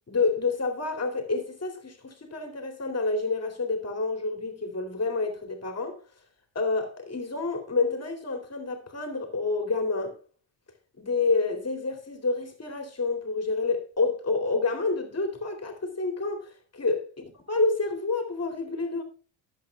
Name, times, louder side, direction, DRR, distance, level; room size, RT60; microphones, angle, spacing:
voice 1, 0.1-6.0 6.5-10.2 11.0-17.1 17.5-19.0, left 3 dB, 30° left, 2.6 m, -28 dB
20.5 x 8.3 x 2.3 m
cardioid pair, 100°, 49 cm